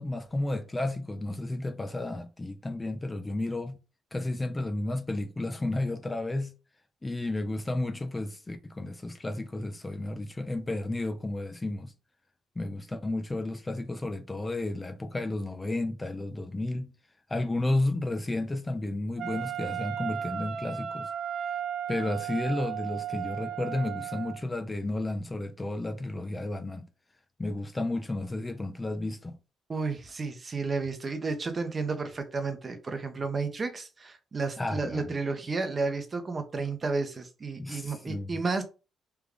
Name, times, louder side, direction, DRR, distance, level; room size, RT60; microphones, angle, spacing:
voice 1, 0.0-3.8 4.1-6.5 7.0-11.9 12.6-16.9 17.3-21.1 21.9-26.8 27.4-29.3 34.6-35.1 37.6-38.3, left 2 dB, 20° left, 0.5 m, -32 dB
Wind instrument woodwind instrument, 19.2-24.4, right 10 dB, 65° right, 0.4 m, -35 dB
voice 2, 29.7-38.6, right 4 dB, 35° right, 0.8 m, -32 dB
3.4 x 2.3 x 3.6 m
cardioid pair, 90°, 0 cm